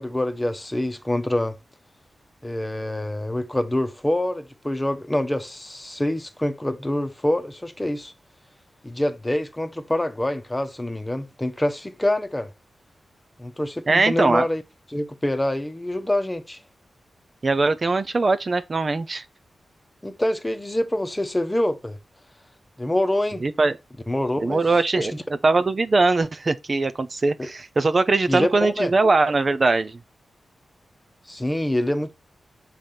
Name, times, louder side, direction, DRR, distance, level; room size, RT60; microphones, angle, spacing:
voice 1, 0.0-1.6 2.4-8.1 8.8-12.5 13.4-14.6 14.9-16.6 20.0-22.0 22.8-23.4 24.1-24.6 24.9-25.2 27.4-27.5 28.3-28.9 31.3-32.1, left 1 dB, 15° left, 1.0 m, -26 dB
voice 2, 13.9-14.5 17.4-19.2 23.4-23.8 24.4-25.1 25.4-30.0, right 3 dB, 40° right, 0.6 m, -21 dB
6.5 x 3.5 x 5.8 m
wide cardioid pair, 90°, 0 cm